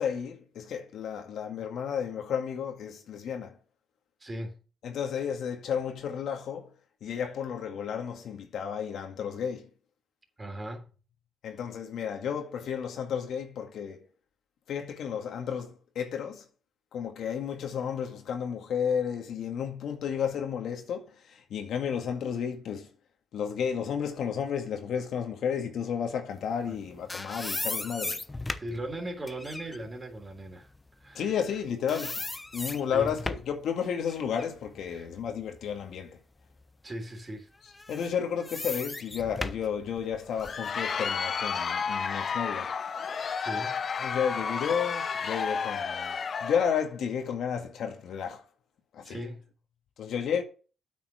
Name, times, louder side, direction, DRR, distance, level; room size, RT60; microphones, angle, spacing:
voice 1, 0.0-3.6 4.8-6.7 7.0-9.7 11.4-14.1 14.7-16.4 16.9-22.9 23.3-28.2 31.1-32.2 32.5-36.2 37.9-42.7 44.0-48.4 48.9-49.2 50.0-50.4, left 7 dB, 70° left, 2.0 m, -32 dB
voice 2, 4.2-4.6 10.4-10.9 26.7-26.8 28.6-30.7 31.0-31.3 32.9-33.1 34.9-35.1 36.8-37.5 43.4-43.8 49.0-49.5, right 1 dB, 25° right, 3.5 m, -38 dB
sound 1, 26.7-31.6 31.9-33.6 34.1-36.0 36.5-36.6 37.7-40.7, left 2 dB, 20° left, 0.8 m, -37 dB
Crowd, 40.2-46.8, left 6 dB, 45° left, 0.8 m, -32 dB
8.9 x 6.0 x 6.3 m
cardioid pair, 90°, 0 cm